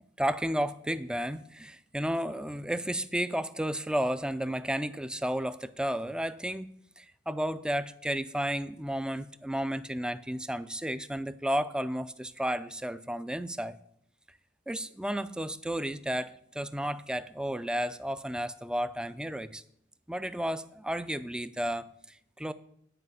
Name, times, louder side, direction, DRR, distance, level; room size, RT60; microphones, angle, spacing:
voice 1, 0.2-13.8 14.7-19.6 20.1-22.5, equal, 5° right, 14 dB, 0.3 m, -32 dB
9.9 x 4.9 x 8.0 m, 0.71 s
head